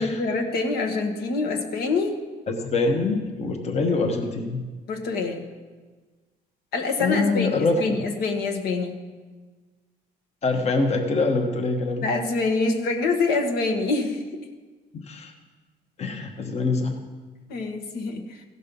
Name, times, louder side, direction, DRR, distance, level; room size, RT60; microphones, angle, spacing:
voice 1, 0.0-2.2 4.9-5.5 6.7-9.0 12.0-14.3 17.5-18.4, left 3 dB, 75° left, 3 dB, 1.3 m, -25 dB
voice 2, 2.5-4.6 7.0-7.8 10.4-12.0 14.9-15.3 16.0-17.0, left 3 dB, 40° left, 3 dB, 1.1 m, -24 dB
15.5 x 5.4 x 5.3 m, 1.4 s
cardioid pair, 110°, 17 cm